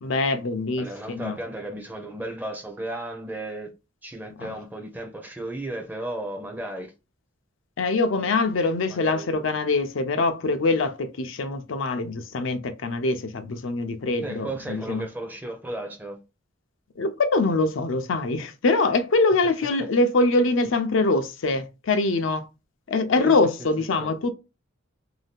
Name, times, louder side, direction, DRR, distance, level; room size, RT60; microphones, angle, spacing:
voice 1, 0.0-1.4 4.4-4.5 7.8-15.0 17.0-22.5 22.9-24.3, left 3 dB, 75° left, 0.5 m, -24 dB
voice 2, 0.8-3.7 4.0-6.9 8.9-9.3 14.2-16.2 20.6-20.7 23.2-23.4 24.0-24.1, right 1 dB, 10° right, 0.5 m, -34 dB
2.7 x 2.2 x 3.4 m
head